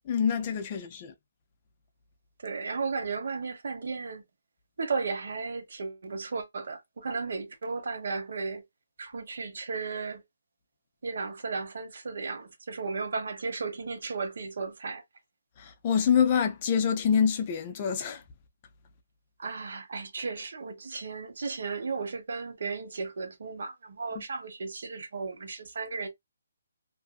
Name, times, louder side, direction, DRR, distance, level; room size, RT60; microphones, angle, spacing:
voice 1, 0.1-1.1 15.6-18.2 24.2-24.3, left 7 dB, 25° left, 0.5 m, -26 dB
voice 2, 2.4-4.2 4.8-8.6 9.0-10.2 11.0-15.0 19.4-26.1, right 4 dB, 60° right, 0.9 m, -34 dB
2.6 x 2.5 x 2.3 m
hypercardioid pair, 170°, 0 cm